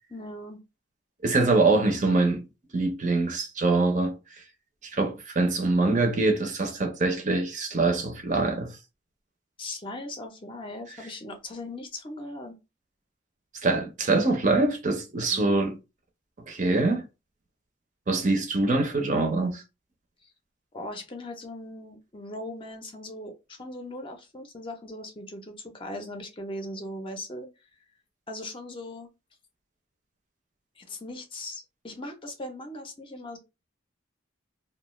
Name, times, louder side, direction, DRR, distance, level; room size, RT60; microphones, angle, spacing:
voice 1, 0.1-0.6 9.6-12.5 15.3-15.7 20.7-27.5 28.3-29.1 30.8-33.4, left 1 dB, 30° left, 0.5 m, -39 dB
voice 2, 1.2-2.4 2.7-4.1 4.9-8.7 13.6-15.8 16.5-17.0 18.1-19.6, right 3 dB, 40° right, 0.5 m, -24 dB
2.3 x 2.3 x 3.0 m
head